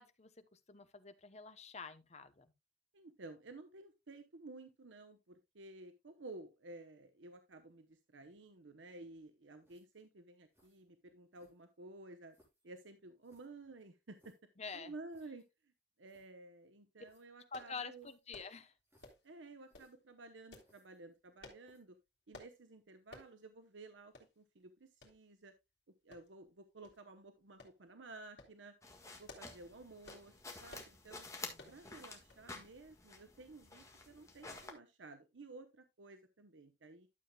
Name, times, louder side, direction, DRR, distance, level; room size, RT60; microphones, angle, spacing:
voice 1, 0.0-2.5 14.6-14.9 17.5-18.7 31.5-31.8, left 5 dB, 35° left, 0.9 m, -48 dB
voice 2, 2.9-12.4 12.6-14.3 14.7-15.7 16.0-18.1 19.2-22.0 22.3-25.5 26.0-28.7 29.2-31.3 31.7-37.1, right 2 dB, 90° right, 0.9 m, -54 dB
sound 1, 9.6-10.0 10.5-10.8 11.3-11.8 12.3-12.7 13.2-14.5 15.1-15.5 15.8-15.9 16.0-16.3 17.0-17.2 17.9-18.3 18.8-19.3 19.6-19.9 20.6-21.3 21.6-22.0, equal, 15° right, 4.2 m, -73 dB
sound 2, 17.5-17.7 18.3-18.5 19.0-19.3 19.7-19.9 20.5-20.7 21.4-21.6 22.3-22.5 23.1-23.3 23.7-23.8 24.1-24.3 25.0-25.2 26.1-26.5 26.8-27.0 27.6-27.8 28.2-28.6 29.1-29.6 30.0-30.3 30.7-30.9 31.6-31.8 32.3-32.5 32.8-32.9, left 2 dB, 65° left, 2.7 m, -55 dB
sound 3, 28.8-34.7, left 3 dB, 15° left, 1.6 m, -51 dB
12.0 x 7.3 x 2.3 m
head